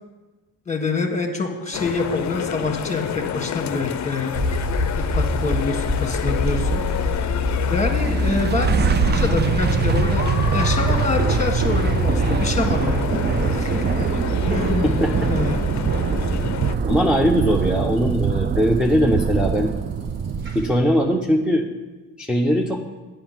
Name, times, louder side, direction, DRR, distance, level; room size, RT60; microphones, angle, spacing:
voice 1, 0.7-4.3 5.0-6.8 7.7-14.1 14.5-15.0 15.3-15.6, left 3 dB, 15° left, 4 dB, 1.7 m, -26 dB
sound 1, 1.7-16.8, left 9 dB, 45° left, 0.6 m, -30 dB
sound 2, 4.3-20.6, left 2 dB, 55° right, 2.9 m, -27 dB
sound 3, 7.9-21.0, right 7 dB, 25° right, 0.4 m, -23 dB
voice 2, 14.8-15.3 16.8-19.7 20.5-21.7 22.2-22.8, equal, ahead, 1 dB, 0.7 m, -20 dB
8.8 x 5.8 x 7.5 m, 1.3 s
cardioid pair, 75°, 41 cm